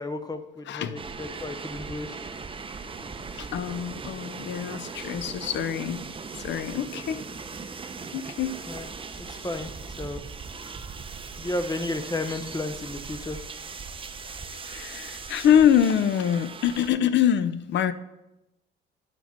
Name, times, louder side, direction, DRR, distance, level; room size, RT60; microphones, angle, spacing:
voice 1, 0.0-2.1 8.7-9.7 10.0-10.2 11.4-13.4, left 2 dB, 20° left, 9 dB, 0.8 m, -33 dB
voice 2, 0.7-1.0 3.3-6.1 6.4-7.2 8.1-8.5 9.4-9.5 14.6-17.9, left 9 dB, 65° left, 14 dB, 0.6 m, -24 dB
sound 1, 1.0-16.9, right 5 dB, 25° right, 0.7 m, -39 dB
10.5 x 5.9 x 4.3 m, 0.94 s
cardioid pair, 90°, 20 cm